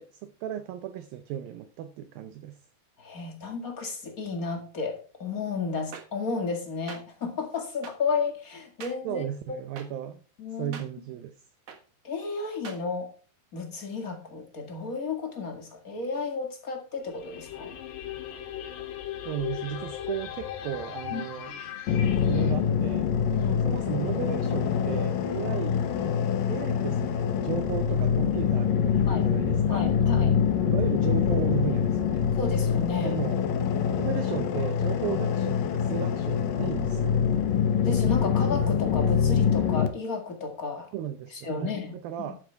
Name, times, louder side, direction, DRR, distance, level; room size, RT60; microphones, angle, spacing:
voice 1, 0.0-2.6 9.0-10.2 10.6-11.3 19.3-21.6 22.3-23.1 23.7-25.8 26.5-29.8 30.7-32.3 33.0-33.4 34.0-37.2 40.9-42.4, right 10 dB, 75° right, 2.3 m, -35 dB
voice 2, 3.0-9.6 10.4-10.8 12.0-13.1 13.5-17.7 21.1-21.2 23.3-23.7 25.5-25.6 29.1-29.3 29.7-30.4 32.4-33.2 37.8-40.9 41.3-42.3, left 4 dB, 40° left, 1.3 m, -33 dB
sound 1, 5.9-6.0 6.9-7.0 7.8-7.9 8.8-8.9 9.8-9.9 10.7-10.9 11.7-11.8 12.6-12.8, right 7 dB, 55° right, 1.9 m, -41 dB
sound 2, 17.0-22.5, left 11 dB, 90° left, 3.6 m, -38 dB
sound 3, 21.9-39.9, left 7 dB, 70° left, 2.5 m, -25 dB
12.5 x 9.2 x 3.4 m
omnidirectional pair, 4.7 m